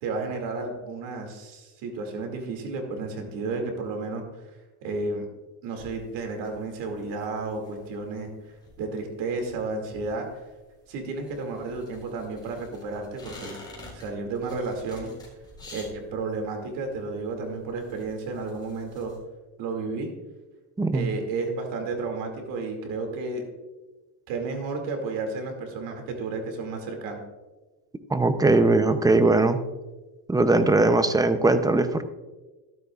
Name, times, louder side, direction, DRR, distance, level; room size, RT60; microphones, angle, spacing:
voice 1, 0.0-4.2 4.8-5.3 5.6-8.3 8.8-10.3 10.9-13.6 13.9-15.1 15.7-19.1 19.6-20.1 20.9-23.4 24.3-27.2, right 3 dB, 80° right, 3 dB, 2.4 m, -32 dB
sound 1, 5.8-19.2, left 2 dB, 10° left, 4.1 m, -49 dB
voice 2, 20.8-21.1 28.1-29.6 30.3-32.0, right 2 dB, 10° right, 10 dB, 0.5 m, -20 dB
13.5 x 12.5 x 2.4 m, 1.2 s
cardioid pair, 135°, 42 cm